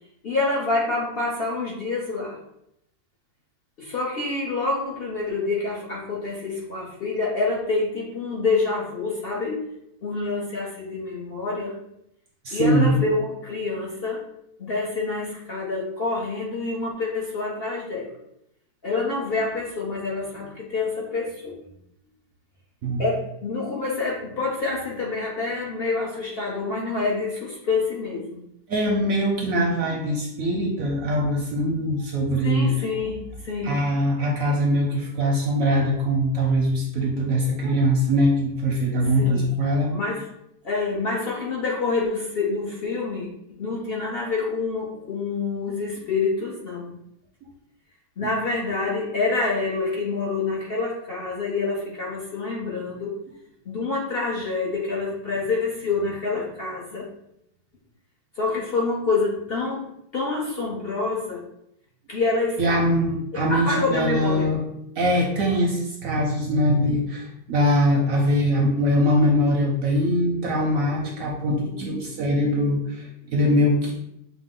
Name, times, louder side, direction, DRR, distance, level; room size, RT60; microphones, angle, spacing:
voice 1, 0.2-2.4 3.8-9.6 10.0-11.8 12.5-14.2 14.6-18.2 18.8-21.5 23.0-28.4 32.4-33.8 39.0-39.5 39.9-40.2 40.6-43.3 43.6-47.0 48.2-53.2 53.6-57.1 58.4-61.4 62.1-62.6 63.3-64.5, left 3 dB, 60° left, -4 dB, 0.6 m, -27 dB
voice 2, 12.4-13.0 22.8-23.0 28.7-32.7 33.6-39.9 62.6-64.6 65.0-73.9, equal, 65° right, 1 dB, 0.8 m, -22 dB
6.0 x 2.0 x 3.7 m, 0.77 s
omnidirectional pair, 2.0 m